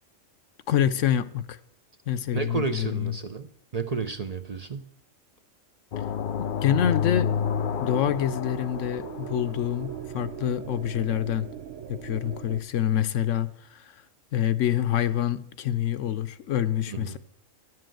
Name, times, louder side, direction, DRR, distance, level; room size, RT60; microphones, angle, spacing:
voice 1, 0.7-1.6 2.1-3.1 6.4-7.3 7.8-11.5 11.9-13.9 14.3-17.2, left 10 dB, 75° left, 1.0 m, -26 dB
voice 2, 2.3-3.5 3.7-4.9 16.9-17.2, right 4 dB, 40° right, 0.6 m, -31 dB
sound 1, 5.9-9.7, left 7 dB, 55° left, 0.6 m, -29 dB
sound 2, 6.5-12.6, right 9 dB, 70° right, 1.0 m, -40 dB
11.0 x 7.7 x 7.6 m
omnidirectional pair, 1.4 m